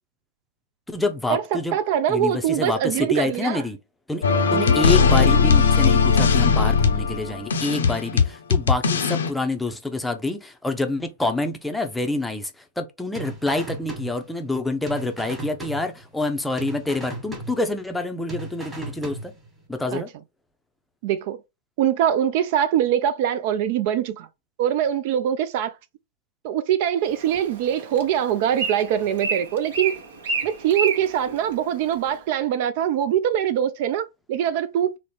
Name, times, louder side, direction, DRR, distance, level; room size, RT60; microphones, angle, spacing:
voice 1, 0.9-1.8 2.1-3.8 4.1-4.2 4.5-12.5 12.8-19.3 19.7-20.1, left 2 dB, 5° left, 0.5 m, -27 dB
voice 2, 1.7-3.6 4.5-4.8 19.9-20.0 21.0-21.4 21.8-24.3 24.6-25.8 26.4-29.9 30.4-35.0, right 10 dB, 50° right, 0.3 m, -23 dB
sound 1, 4.2-9.3, left 5 dB, 75° left, 0.6 m, -18 dB
sound 2, 13.1-14.6 14.9-16.3 16.6-18.0 18.3-19.6, right 2 dB, 15° right, 1.4 m, -37 dB
Bird, 27.0-32.2, right 4 dB, 65° right, 1.0 m, -31 dB
3.8 x 2.0 x 3.2 m
hypercardioid pair, 110°, 0 cm